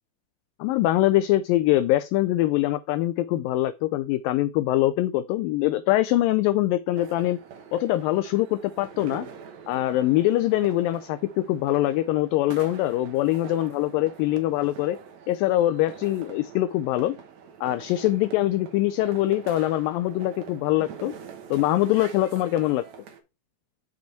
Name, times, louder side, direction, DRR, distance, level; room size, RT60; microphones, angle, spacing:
voice 1, 0.6-7.4 7.7-9.3 9.7-15.0 15.3-17.2 17.6-21.1 21.5-22.8, left 15 dB, 80° left, 2.1 m, -23 dB
sound 1, 7.0-23.2, right 7 dB, 60° right, 2.0 m, -44 dB
6.9 x 5.2 x 4.4 m
omnidirectional pair, 4.3 m